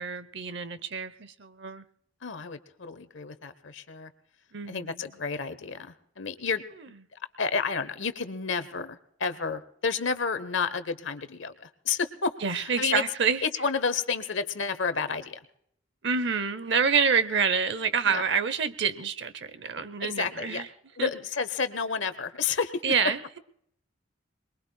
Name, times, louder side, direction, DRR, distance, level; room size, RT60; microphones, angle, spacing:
voice 1, 0.0-1.8 4.5-5.0 12.4-13.4 16.0-20.7 21.0-21.1 22.8-23.4, right 6 dB, 60° right, 15 dB, 0.8 m, -27 dB
voice 2, 2.2-4.1 4.7-13.0 13.4-15.4 18.0-18.2 20.0-20.7 21.0-22.8, left 5 dB, 75° left, 12 dB, 1.0 m, -31 dB
23.5 x 21.5 x 2.3 m, 0.70 s
head